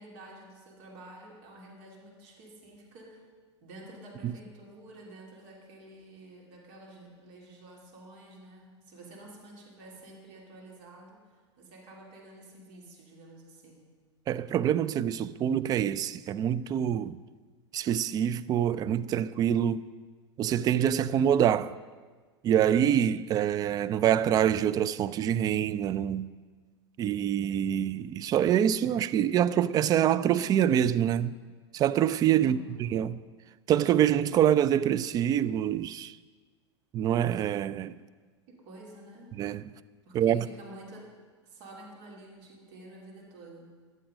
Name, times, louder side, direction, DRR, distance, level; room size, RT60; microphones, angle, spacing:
voice 1, 0.0-3.3 3.6-13.8 32.4-33.0 38.5-39.4 40.1-41.1 41.4-43.7, right 1 dB, 45° right, 2.9 m, -49 dB
voice 2, 14.3-17.2 17.7-19.9 20.4-21.8 22.4-26.3 27.0-31.3 31.7-33.2 33.7-36.2 36.9-38.0 39.3-39.6 40.1-40.5, right 10 dB, 25° right, 0.4 m, -25 dB
14.5 x 11.0 x 5.1 m
figure-of-eight pair, 90°, 15 cm